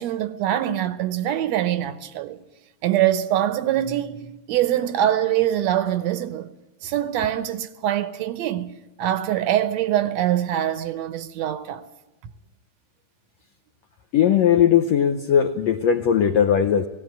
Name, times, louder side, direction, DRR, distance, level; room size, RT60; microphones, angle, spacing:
voice 1, 0.0-2.4 2.8-6.5 6.8-11.8, right 12 dB, 70° right, 2.0 m, -24 dB
voice 2, 14.1-16.9, left 8 dB, 70° left, 1.9 m, -18 dB
18.0 x 17.5 x 9.2 m
omnidirectional pair, 3.4 m